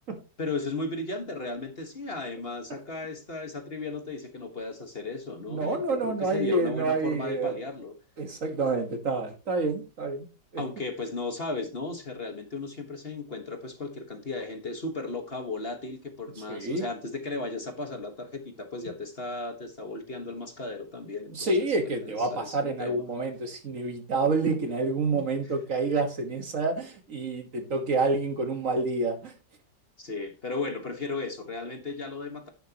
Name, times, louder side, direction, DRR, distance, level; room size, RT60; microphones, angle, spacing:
voice 1, 0.4-7.9 10.6-21.5 21.8-23.0 25.1-25.2 30.0-32.5, left 3 dB, 35° left, 1.5 m, -35 dB
voice 2, 5.5-7.5 8.2-10.2 10.5-10.6 16.5-16.8 21.3-29.3, right 3 dB, 50° right, 1.7 m, -28 dB
10.0 x 10.0 x 2.9 m
omnidirectional pair, 1.8 m